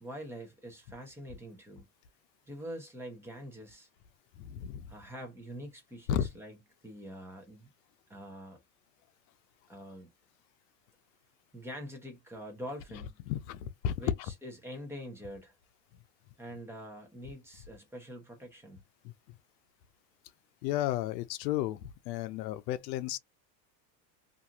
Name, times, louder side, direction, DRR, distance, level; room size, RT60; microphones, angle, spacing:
voice 1, 0.0-1.9 2.5-3.9 4.9-6.6 6.8-7.7 8.1-8.6 9.7-10.1 11.5-13.2 14.0-15.5 16.4-18.8, equal, 5° right, 0.6 m, -45 dB
voice 2, 4.3-4.9 6.1-6.3 13.3-14.0 19.0-19.1 20.6-23.2, left 11 dB, 80° left, 0.6 m, -33 dB
2.6 x 2.4 x 2.8 m
supercardioid pair, 145°, 50 cm